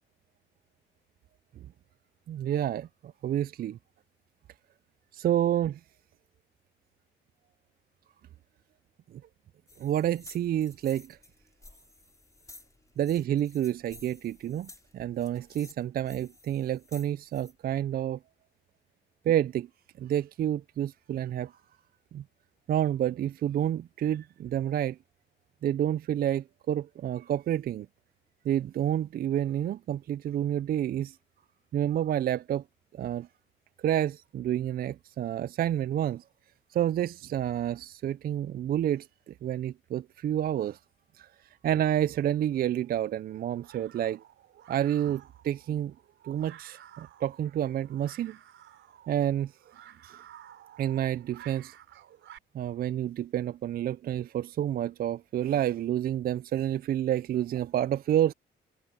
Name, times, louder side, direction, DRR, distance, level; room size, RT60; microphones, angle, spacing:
voice 1, 2.3-3.8 5.1-5.8 9.1-9.2 9.8-11.2 13.0-18.2 19.3-19.7 20.0-21.5 22.1-22.2 22.7-25.0 25.6-27.9 28.4-31.2 31.7-32.6 32.9-33.3 33.8-36.2 36.7-40.8 41.1-41.3 41.6-44.2 44.7-45.9 46.2-48.4 49.1-49.5 50.0-50.2 50.8-51.7 52.5-58.3, right 11 dB, 50° right, 0.4 m, -29 dB
sound 1, 9.7-17.5, left 2 dB, 15° left, 4.5 m, -54 dB
sound 2, 42.5-52.4, right 11 dB, 75° right, 4.4 m, -53 dB
cardioid pair, 90°, 20 cm